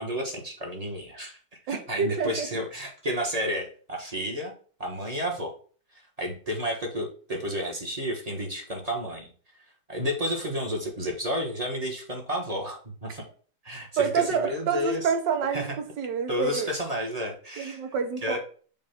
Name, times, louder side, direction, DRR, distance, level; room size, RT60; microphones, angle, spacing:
voice 1, 0.0-4.5 4.8-5.5 5.9-9.3 9.9-13.2 13.6-15.1 15.5-15.7 16.3-17.8 18.2-18.4, equal, 25° right, 0 dB, 1.0 m, -31 dB
voice 2, 1.7-2.5 14.0-15.6 16.0-16.7 17.6-18.4, right 6 dB, 75° right, 6 dB, 1.5 m, -27 dB
7.0 x 2.5 x 5.6 m, 0.43 s
omnidirectional pair, 1.9 m